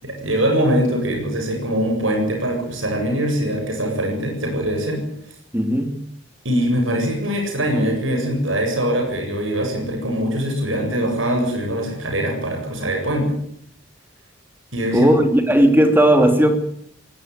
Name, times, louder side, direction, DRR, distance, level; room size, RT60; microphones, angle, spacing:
voice 1, 0.0-5.0 6.4-13.3 14.7-15.1, equal, 80° right, 2 dB, 8.0 m, -22 dB
voice 2, 5.5-6.0 14.9-16.6, right 1 dB, 10° right, 7 dB, 2.9 m, -15 dB
20.5 x 18.0 x 9.6 m, 0.68 s
head